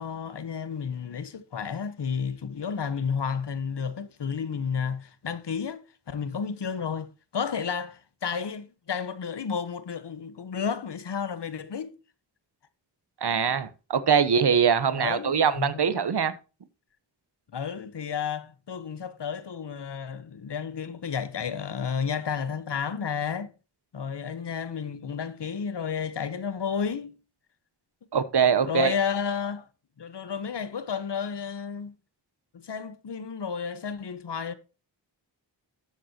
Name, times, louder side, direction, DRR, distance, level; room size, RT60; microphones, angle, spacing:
voice 1, 0.0-11.9 14.9-15.8 17.5-23.5 23.9-27.1 28.6-29.7 30.0-31.9 32.5-34.5, left 6 dB, 65° left, 1.1 m, -32 dB
voice 2, 13.2-16.4 28.1-28.9, right 7 dB, 60° right, 1.1 m, -23 dB
12.0 x 7.6 x 2.9 m
cardioid pair, 60°, 45 cm